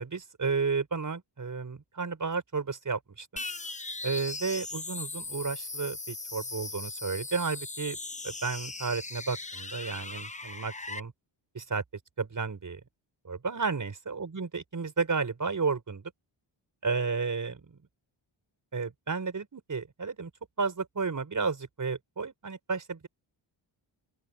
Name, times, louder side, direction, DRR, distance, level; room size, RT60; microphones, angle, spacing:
voice 1, 0.0-3.5 4.0-8.0 8.2-11.1 11.5-11.8 12.2-12.8 13.2-16.1 16.8-17.8 18.7-20.3 20.6-23.1, right 4 dB, 40° right, 6.0 m, -32 dB
sound 1, 3.4-11.0, left 3 dB, 15° left, 1.0 m, -39 dB
open air
wide cardioid pair, 110°, 48 cm